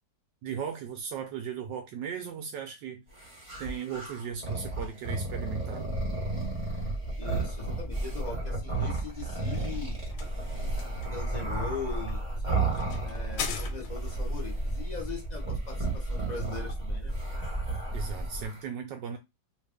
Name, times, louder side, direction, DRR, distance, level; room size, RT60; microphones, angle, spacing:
voice 1, 0.4-3.0 3.6-5.9 17.9-19.2, right 7 dB, 75° right, 1.2 m, -37 dB
sound 1, 3.2-13.6 13.9-14.9 15.4-18.6, right 4 dB, 20° right, 1.0 m, -35 dB
sound 2, 5.8-18.4, right 1 dB, 30° left, 1.2 m, -35 dB
voice 2, 7.2-10.0 11.1-12.8 13.0-17.1, left 5 dB, 65° left, 0.4 m, -40 dB
sound 3, 9.1-14.2, left 7 dB, 90° left, 1.4 m, -42 dB
3.1 x 2.4 x 3.4 m
omnidirectional pair, 2.0 m